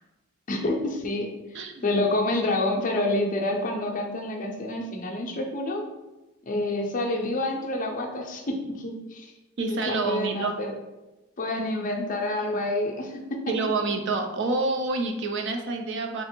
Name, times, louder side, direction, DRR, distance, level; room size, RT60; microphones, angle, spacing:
voice 1, 0.5-5.8 6.5-9.3 9.7-10.7 11.4-13.4, left 2 dB, 35° left, 1 dB, 0.5 m, -28 dB
voice 2, 1.5-1.9 9.6-10.6 13.5-16.2, right 3 dB, 55° right, 5 dB, 0.4 m, -27 dB
3.5 x 2.5 x 4.3 m, 1.0 s
head